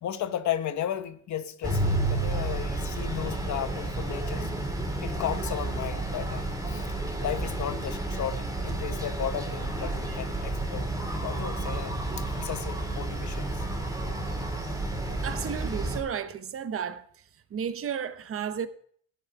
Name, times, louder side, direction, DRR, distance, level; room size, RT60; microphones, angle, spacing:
voice 1, 0.0-4.5 5.0-13.6, left 10 dB, 70° left, 1.0 m, -35 dB
Quiet Bangkok Neighborhood, 1.6-16.0, right 2 dB, 10° right, 3.1 m, -31 dB
voice 2, 15.2-17.0 17.5-18.7, right 8 dB, 50° right, 1.0 m, -33 dB
13.0 x 9.5 x 4.8 m
cardioid pair, 90°, 30 cm